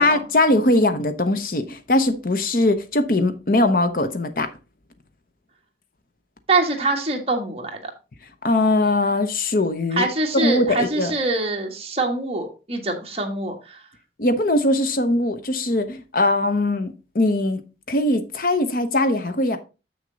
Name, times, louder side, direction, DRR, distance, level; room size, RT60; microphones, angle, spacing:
voice 1, 0.0-4.5 8.4-10.0 10.3-11.1 14.2-17.6 17.9-19.6, left 2 dB, 50° left, 0.8 m, -21 dB
voice 2, 6.5-7.9 9.9-13.8, right 2 dB, 35° right, 1.5 m, -24 dB
7.4 x 6.3 x 3.9 m
head